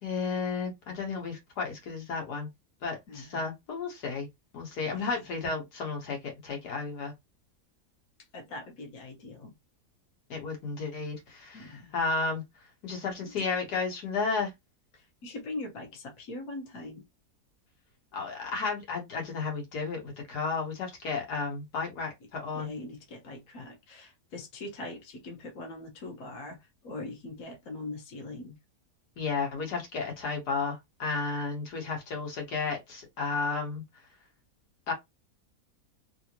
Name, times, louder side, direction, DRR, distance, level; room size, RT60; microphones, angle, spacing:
voice 1, 0.0-2.5 2.8-4.3 4.5-7.1 10.3-12.4 12.8-14.5 18.1-22.7 29.2-33.8 34.9-35.0, left 4 dB, 80° left, 1.8 m, -33 dB
voice 2, 3.1-3.5 4.8-5.3 8.3-9.5 11.5-11.9 13.2-13.3 14.9-17.0 22.5-28.6, left 2 dB, 65° left, 1.5 m, -42 dB
3.4 x 2.7 x 2.9 m
omnidirectional pair, 1.7 m